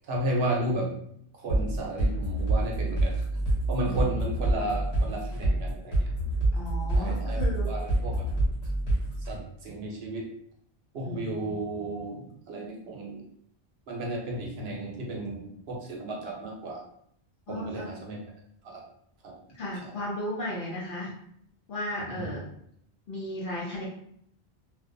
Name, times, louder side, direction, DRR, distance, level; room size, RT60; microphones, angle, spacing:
voice 1, 0.1-0.9 1.3-3.2 3.7-6.1 6.9-7.4 7.7-8.3 9.3-10.3 10.9-12.2 12.5-13.2 13.9-16.8 17.5-18.2 18.6-18.8 19.2-19.3 19.8-19.9 22.0-22.3, right 1 dB, 75° right, -1 dB, 0.9 m, -33 dB
sound 1, 1.5-9.3, right 1 dB, 80° left, 1.3 m, -27 dB
voice 2, 6.5-7.7 11.0-11.5 17.5-17.8 19.6-21.1 21.7-22.4 23.1-23.8, left 1 dB, 60° left, -6 dB, 0.8 m, -35 dB
2.5 x 2.2 x 2.5 m, 0.70 s
omnidirectional pair, 1.1 m